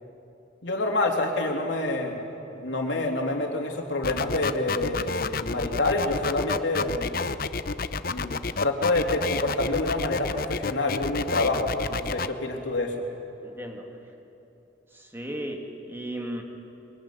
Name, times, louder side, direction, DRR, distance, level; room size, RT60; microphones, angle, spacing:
voice 1, 0.6-2.3 2.5-7.1 8.1-8.3 8.6-12.9, left 2 dB, 80° left, 1 dB, 3.2 m, -27 dB
sound 1, 4.0-12.3, left 4 dB, 50° left, 0.7 m, -30 dB
voice 2, 13.4-14.2 14.9-16.4, right 1 dB, 10° right, 2 dB, 2.1 m, -36 dB
23.0 x 22.5 x 9.8 m, 2.9 s
head